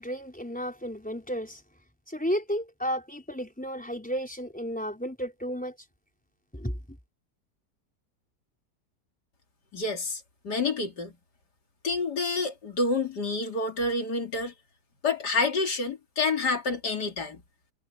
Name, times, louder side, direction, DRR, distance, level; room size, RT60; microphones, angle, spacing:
voice 1, 0.0-1.6 2.1-5.8 6.5-6.8, equal, 5° left, 4.5 m, -33 dB
voice 2, 9.7-11.2 11.8-14.5 15.0-17.4, left 3 dB, 75° left, 3.4 m, -28 dB
omnidirectional pair, 1.8 m